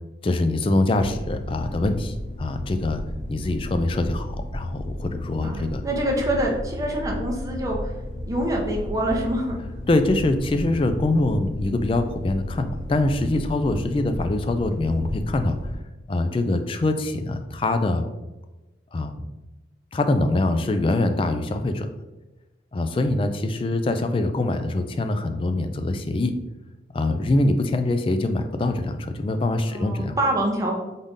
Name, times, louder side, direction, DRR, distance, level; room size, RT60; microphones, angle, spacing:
voice 1, 0.2-3.0 3.3-5.8 9.9-15.6 16.1-18.0 18.9-19.3 19.9-21.9 22.7-26.3 26.9-30.1, left 2 dB, 30° left, 8 dB, 0.3 m, -24 dB
sound 1, 0.9-15.8, left 1 dB, 90° left, 1.2 m, -34 dB
voice 2, 5.4-7.8 8.3-9.6 29.7-30.8, right 1 dB, 20° right, -1 dB, 0.8 m, -25 dB
4.0 x 3.7 x 3.6 m, 1.1 s
head